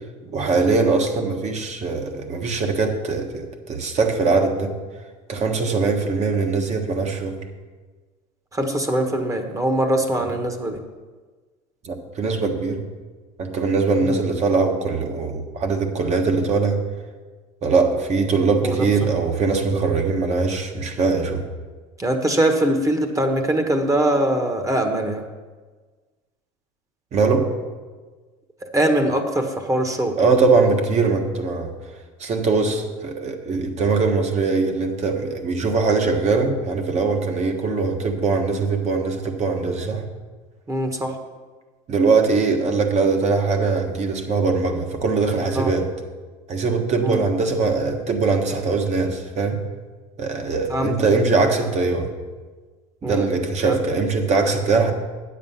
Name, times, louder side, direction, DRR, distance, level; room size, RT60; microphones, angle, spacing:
voice 1, 0.3-4.7 5.3-7.4 10.2-10.3 11.8-12.8 13.4-16.8 17.6-21.5 27.1-27.5 30.2-31.7 32.2-40.0 41.9-45.9 46.5-49.6 50.2-52.1 53.0-54.9, right 4 dB, 40° right, 4 dB, 1.4 m, -21 dB
voice 2, 8.5-10.8 18.6-18.8 22.0-25.2 28.7-30.2 40.7-41.1 45.5-45.7 47.0-47.2 50.7-51.0 53.0-53.3 53.6-53.8, right 1 dB, 20° right, 5 dB, 1.3 m, -22 dB
9.0 x 7.4 x 5.8 m, 1.4 s
supercardioid pair, 95°, 17 cm